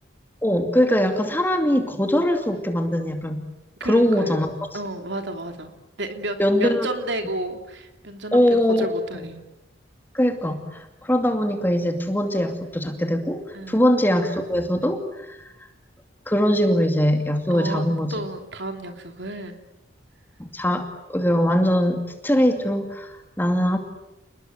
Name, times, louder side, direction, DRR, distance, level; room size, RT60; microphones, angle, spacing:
voice 1, 0.4-3.4 3.8-4.5 6.4-6.9 8.3-8.9 10.1-13.4 13.7-15.0 15.3-15.4 16.3-18.1 20.4-23.8, equal, 10° left, 5 dB, 2.5 m, -21 dB
voice 2, 3.8-4.4 4.7-5.7 6.0-8.4 8.8-9.4 13.5-13.9 17.5-19.6, right 1 dB, 65° right, 6 dB, 3.1 m, -32 dB
30.0 x 20.5 x 9.1 m, 0.95 s
head